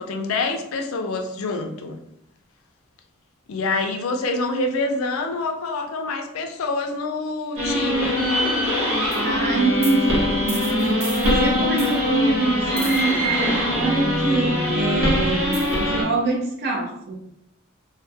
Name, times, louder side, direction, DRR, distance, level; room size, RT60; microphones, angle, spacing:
voice 1, 0.0-2.0 3.5-8.2, left 3 dB, 75° left, 5 dB, 0.4 m, -26 dB
sound 1, 7.6-16.0, left 1 dB, 65° right, 0.8 m, -22 dB
voice 2, 9.2-17.2, right 3 dB, 50° right, 0 dB, 0.4 m, -25 dB
2.2 x 2.1 x 2.6 m, 0.79 s
head